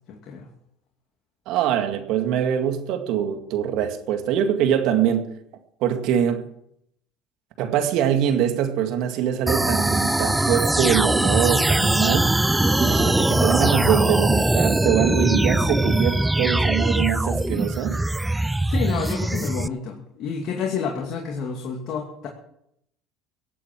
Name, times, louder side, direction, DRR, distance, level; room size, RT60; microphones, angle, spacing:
voice 1, 0.1-0.5 18.7-22.3, left 6 dB, 55° left, 2.5 m, -29 dB
voice 2, 1.5-5.3 5.8-6.4 7.6-12.4 12.7-18.0, right 9 dB, 65° right, 2.0 m, -23 dB
sound 1, 9.5-19.7, right 2 dB, 10° right, 0.5 m, -21 dB
17.0 x 8.4 x 7.4 m
hypercardioid pair, 80°, 0 cm